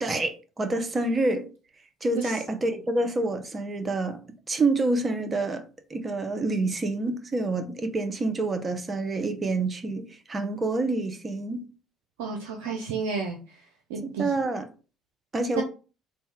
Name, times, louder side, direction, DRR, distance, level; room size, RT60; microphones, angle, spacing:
voice 1, 0.0-1.5 2.0-4.2 4.5-5.6 5.9-11.7 14.2-14.7 15.3-15.6, right 2 dB, 30° right, 0.7 m, -27 dB
voice 2, 12.2-13.6 13.9-14.3 15.6-15.7, right 5 dB, 80° right, 0.4 m, -31 dB
3.4 x 2.1 x 4.2 m
hypercardioid pair, 55°, 0 cm